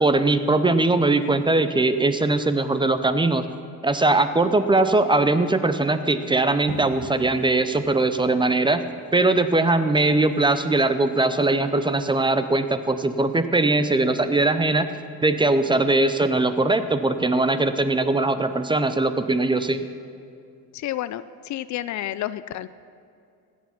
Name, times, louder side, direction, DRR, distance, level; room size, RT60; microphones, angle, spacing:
voice 1, 0.0-3.5 3.8-8.8 9.1-14.9 15.2-19.8, right 2 dB, 15° right, 11 dB, 0.6 m, -21 dB
sound 1, 6.7-12.1, right 4 dB, 80° right, 1.5 m, -45 dB
voice 2, 20.7-22.7, left 13 dB, 50° left, 15 dB, 0.4 m, -30 dB
15.5 x 7.4 x 5.8 m, 2.4 s
supercardioid pair, 95°, 36 cm